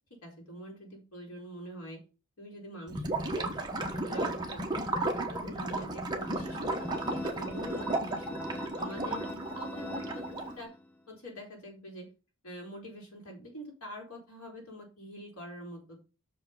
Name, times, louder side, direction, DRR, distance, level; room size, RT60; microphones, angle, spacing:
voice 1, 0.1-2.0 2.4-3.5 3.9-9.3 9.6-10.2 10.6-10.7 11.1-12.1 12.4-16.0, equal, 75° left, -1 dB, 4.0 m, -45 dB
Gurgling / Liquid, 2.9-10.6, right 2 dB, 20° right, 1.2 m, -34 dB
sound 1, 6.2-10.9, left 1 dB, 10° left, 0.6 m, -42 dB
6.4 x 5.6 x 5.5 m, 0.33 s
head